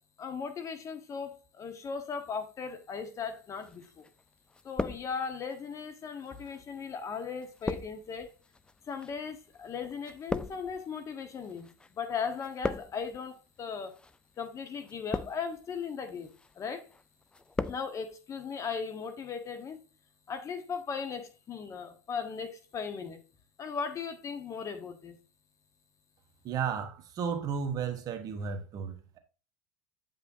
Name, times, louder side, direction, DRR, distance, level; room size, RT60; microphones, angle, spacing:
voice 1, 0.2-4.0 4.6-8.3 8.9-13.9 14.4-16.3 16.6-16.9 17.6-19.8 20.3-23.2 23.6-25.2, left 6 dB, 35° left, 1.3 m, -37 dB
sound 1, 3.6-4.2 4.5-5.5 6.3-11.9 12.2-13.2 13.9-14.2 14.8-15.6 16.1-16.5 16.9-17.9 18.1-18.2, left 3 dB, 10° left, 0.4 m, -38 dB
voice 2, 26.4-29.2, right 6 dB, 45° right, 1.3 m, -34 dB
8.3 x 5.4 x 2.7 m
supercardioid pair, 100°, 9 cm